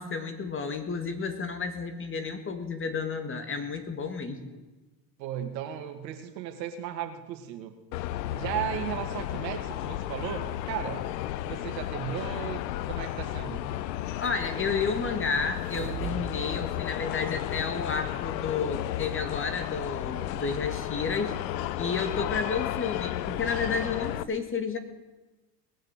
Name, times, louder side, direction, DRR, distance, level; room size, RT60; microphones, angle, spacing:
voice 1, 0.0-4.6 14.2-21.4 21.8-24.8, left 5 dB, 25° left, 9 dB, 1.8 m, -31 dB
voice 2, 5.2-7.7 8.3-11.1 11.4-13.7, right 10 dB, 85° right, 5 dB, 2.1 m, -35 dB
sound 1, 7.9-24.2, left 13 dB, 85° left, 0.8 m, -33 dB
sound 2, 15.5-16.4 16.7-16.8, right 9 dB, 70° right, 3.0 m, -37 dB
19.5 x 6.7 x 8.2 m, 1.1 s
supercardioid pair, 100°, 49 cm